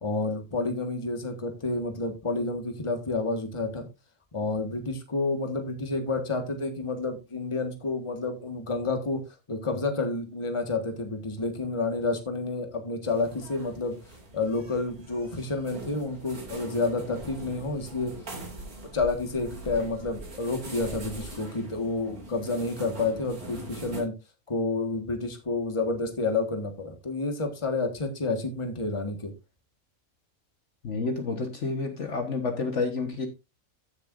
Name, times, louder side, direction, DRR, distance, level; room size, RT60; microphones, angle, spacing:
voice 1, 0.0-3.9 4.3-9.2 9.5-14.0 14.3-18.1 18.9-24.1 24.5-29.3, left 3 dB, 20° left, 1.6 m, -29 dB
sound 1, 13.0-24.0, right 1 dB, 80° right, 3.1 m, -42 dB
voice 2, 30.8-33.3, left 4 dB, 55° left, 1.6 m, -29 dB
15.0 x 6.8 x 2.6 m
omnidirectional pair, 1.5 m